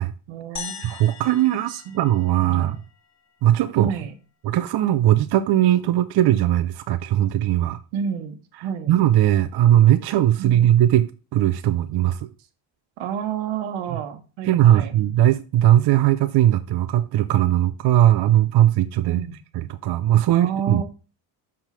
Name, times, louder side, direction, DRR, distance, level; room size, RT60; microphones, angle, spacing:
voice 1, 0.3-0.9 1.7-2.0 2.4-2.8 3.8-4.1 7.9-8.3 8.6-8.9 10.4-10.7 13.0-15.0 19.0-19.4 20.3-20.8, right 7 dB, 80° right, 1.2 m, -30 dB
sound 1, 0.6-3.0, left 6 dB, 35° left, 1.2 m, -39 dB
voice 2, 0.8-2.8 3.4-3.9 4.4-7.8 8.9-12.3 13.9-14.0 14.4-19.2 19.5-20.8, right 12 dB, 55° right, 0.6 m, -19 dB
5.9 x 3.6 x 5.6 m
supercardioid pair, 75°, 48 cm